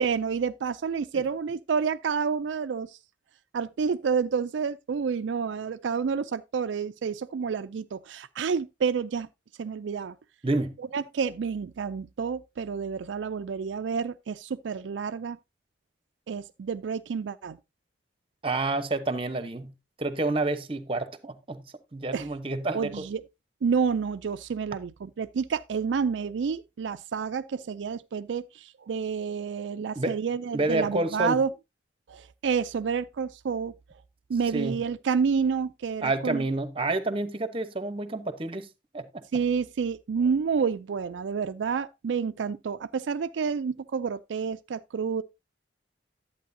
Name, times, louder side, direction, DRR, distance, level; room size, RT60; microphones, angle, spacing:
voice 1, 0.0-3.0 3.5-9.3 9.6-10.2 10.9-15.4 16.3-17.6 22.1-22.3 22.7-23.2 23.6-31.5 32.1-33.7 34.3-36.4 39.3-45.2, right 6 dB, 75° right, 0.4 m, -29 dB
voice 2, 10.4-10.8 18.4-19.7 20.0-21.6 21.9-23.0 30.0-30.2 30.5-31.4 34.5-34.8 36.0-38.7 38.9-39.2, right 2 dB, 30° right, 0.9 m, -29 dB
11.0 x 8.6 x 2.7 m
head